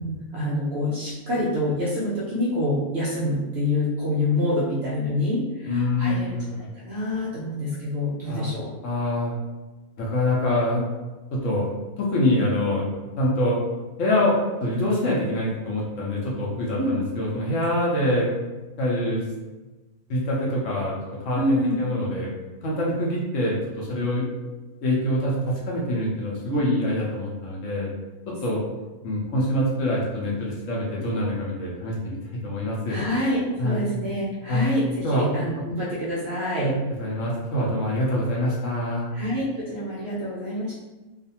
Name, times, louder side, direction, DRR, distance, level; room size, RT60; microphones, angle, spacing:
voice 1, 0.0-8.7 16.8-17.0 21.3-21.8 26.5-26.8 32.9-36.7 39.1-40.7, left 1 dB, 65° right, -6 dB, 0.6 m, -26 dB
voice 2, 5.7-6.3 8.3-8.5 8.8-9.4 10.0-10.8 11.3-11.7 12.0-12.9 13.2-13.6 14.0-18.3 18.8-19.2 20.1-20.9 21.2-22.3 22.6-24.2 24.8-27.9 28.3-28.6 29.0-32.2 32.4-33.0 33.6-33.8 34.5-34.7 35.0-35.3 36.6-36.7 37.0-39.1, left 1 dB, 65° left, -4 dB, 0.9 m, -25 dB
2.4 x 2.4 x 2.7 m, 1.2 s
omnidirectional pair, 1.6 m